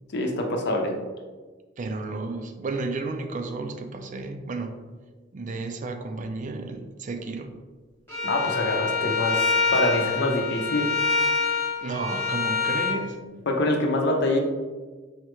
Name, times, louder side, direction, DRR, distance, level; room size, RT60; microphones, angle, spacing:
voice 1, 0.1-1.0 8.2-10.9 13.5-14.4, left 1 dB, 65° left, 2 dB, 0.7 m, -25 dB
voice 2, 1.8-4.7 5.3-7.5 11.8-13.3, right 3 dB, 40° right, 6 dB, 0.4 m, -32 dB
Bowed string instrument, 8.1-13.0, left 5 dB, 10° left, 1.1 m, -26 dB
4.8 x 3.2 x 3.1 m, 1.4 s
head